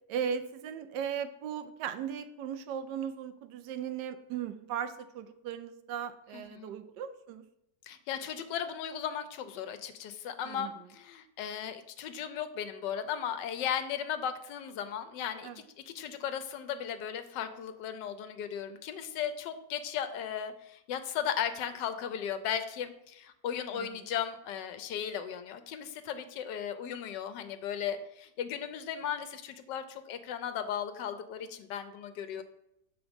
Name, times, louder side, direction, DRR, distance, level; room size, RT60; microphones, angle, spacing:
voice 1, 0.1-7.4 10.4-10.7 15.4-15.6 23.7-23.9 32.4-32.5, right 8 dB, 75° right, 10 dB, 1.2 m, -37 dB
voice 2, 6.3-6.7 7.8-32.4, left 8 dB, 80° left, 10 dB, 1.3 m, -36 dB
7.0 x 3.8 x 5.1 m, 0.81 s
omnidirectional pair, 1.9 m